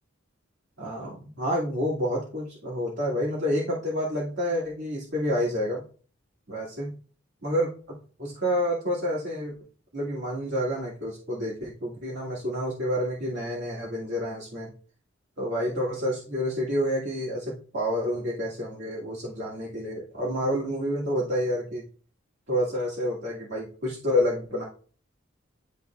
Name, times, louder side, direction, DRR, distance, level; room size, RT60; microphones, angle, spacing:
voice 1, 0.8-5.8 6.5-6.9 7.4-9.5 9.9-14.7 15.4-21.8 22.5-24.6, equal, 60° right, -7 dB, 2.1 m, -29 dB
11.0 x 3.8 x 2.3 m, 0.39 s
head